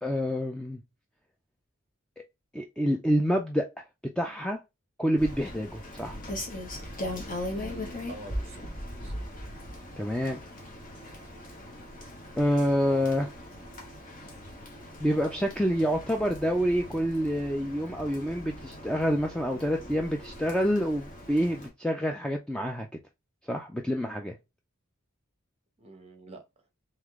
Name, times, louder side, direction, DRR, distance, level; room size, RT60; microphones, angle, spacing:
voice 1, 0.0-0.8 2.5-3.8 4.2-4.6 5.0-6.2 10.0-10.4 12.4-13.3 15.0-22.9 23.5-24.4, equal, 5° left, 0.3 m, -27 dB
Rain, 5.2-21.7, left 1 dB, 40° left, 1.1 m, -40 dB
voice 2, 7.5-9.2 25.8-26.4, right 2 dB, 25° right, 0.9 m, -46 dB
3.5 x 3.2 x 3.5 m
head